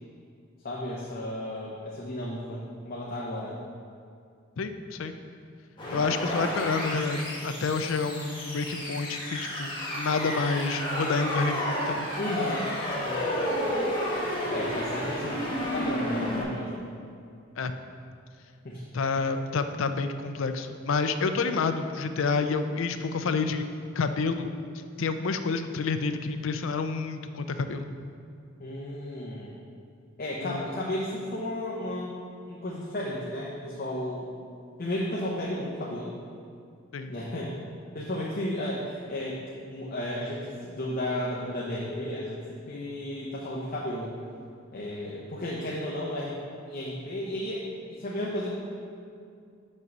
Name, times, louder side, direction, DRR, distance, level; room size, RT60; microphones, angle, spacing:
voice 1, 0.6-3.6 12.2-13.3 14.5-16.8 18.6-18.8 28.6-29.5 30.2-32.2 32.5-34.3 34.8-36.1 37.1-37.5 37.9-44.1 44.7-46.4 46.7-47.7 48.0-48.6, left 1 dB, 45° left, -4 dB, 0.8 m, -33 dB
voice 2, 4.6-5.2 5.9-12.1 17.6-17.7 18.9-23.6 23.9-24.5 25.0-27.9 30.4-30.7 36.9-37.1, left 4 dB, 75° left, 8 dB, 0.5 m, -29 dB
sound 1, 5.8-16.4, equal, 25° left, 1.5 m, -31 dB
6.2 x 5.4 x 5.3 m, 2.4 s
head